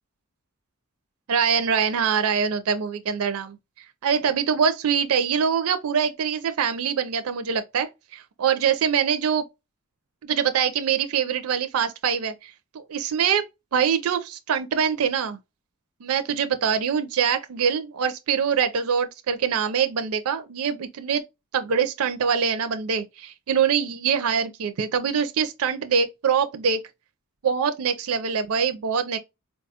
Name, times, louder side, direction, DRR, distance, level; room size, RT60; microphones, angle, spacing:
voice 1, 1.3-3.6 4.0-9.4 10.2-13.4 13.7-15.4 16.0-21.2 21.5-26.8 27.4-29.2, right 7 dB, 75° right, 0.4 m, -24 dB
4.4 x 2.2 x 2.7 m
head